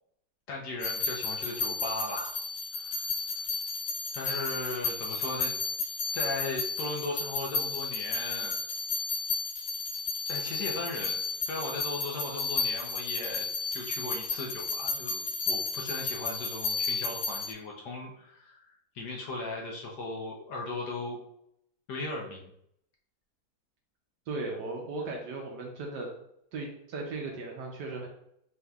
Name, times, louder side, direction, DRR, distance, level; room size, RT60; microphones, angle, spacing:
voice 1, 0.5-2.3 2.7-3.1 4.1-5.5 6.1-8.6 10.3-11.2 11.4-13.5 13.7-18.7 18.9-21.2 21.9-22.4, left 2 dB, 65° left, -1 dB, 1.1 m, -37 dB
sound 1, 0.8-17.5, left 4 dB, 85° left, 1.7 m, -33 dB
voice 2, 24.3-26.1 26.5-28.1, right 3 dB, 70° right, 0 dB, 1.0 m, -36 dB
4.2 x 3.5 x 2.3 m, 0.75 s
omnidirectional pair, 2.2 m